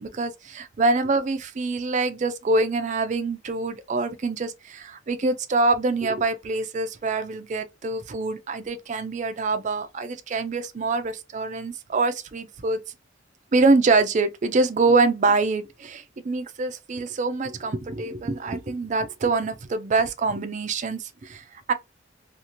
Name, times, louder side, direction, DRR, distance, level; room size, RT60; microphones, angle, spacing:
voice 1, 0.0-12.8 13.5-21.7, right 3 dB, 40° right, 0.4 m, -25 dB
2.6 x 2.4 x 2.9 m
head